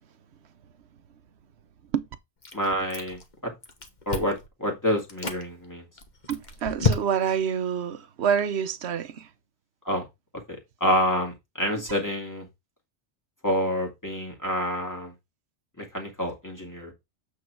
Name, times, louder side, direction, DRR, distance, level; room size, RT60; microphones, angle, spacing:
Chewing mastication, 2.4-3.3 3.6-4.5 5.0-5.4 6.0-7.4, left 4 dB, 40° left, 1.3 m, -29 dB
voice 1, 2.5-3.5 4.1-5.9 9.8-10.0 10.8-12.5 13.4-15.1 15.8-16.9, equal, 15° left, 2.3 m, -28 dB
voice 2, 6.3-9.3 11.7-11.8, right 8 dB, 70° right, 1.0 m, -27 dB
8.4 x 3.8 x 4.6 m
omnidirectional pair, 1.2 m